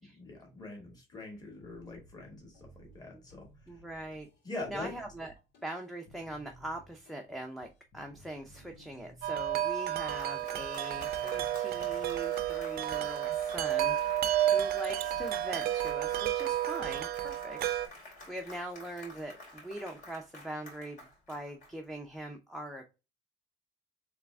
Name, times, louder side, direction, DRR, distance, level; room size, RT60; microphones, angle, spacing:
voice 1, 0.2-3.5 4.4-4.9, left 2 dB, 25° left, 0 dB, 2.1 m, -43 dB
sound 1, 1.6-12.1, equal, 80° left, 2.2 m, -58 dB
voice 2, 3.7-4.3 4.7-5.3 5.6-14.2 14.5-17.6 18.3-22.9, right 1 dB, ahead, 3 dB, 0.6 m, -42 dB
Wind chime, 9.2-17.9, right 12 dB, 65° right, 0.5 m, -31 dB
Applause, 9.7-22.2, left 2 dB, 50° left, 2.6 m, -50 dB
3.6 x 3.4 x 3.4 m, 0.29 s
cardioid pair, 110°, 17 cm